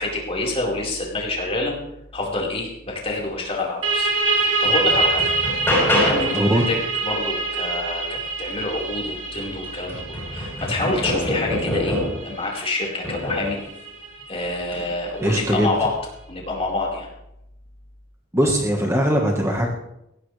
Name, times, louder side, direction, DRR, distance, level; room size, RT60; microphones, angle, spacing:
voice 1, 0.0-1.7 2.1-4.1 4.4-5.3 5.7-6.8 7.0-10.0 10.3-13.6 14.3-16.0 16.3-17.1, left 2 dB, 30° left, -3 dB, 4.6 m, -27 dB
sound 1, 3.8-15.2, right 3 dB, 65° right, 3.0 m, -26 dB
sound 2, 4.1-4.2 4.6-6.5 8.8-8.9 9.4-12.3 13.0-13.6 14.6-14.9, left 1 dB, 10° left, 7.9 m, -25 dB
voice 2, 6.3-6.7 15.2-15.9 18.3-19.7, equal, 15° right, 0 dB, 1.4 m, -20 dB
20.0 x 16.0 x 3.3 m, 0.84 s
head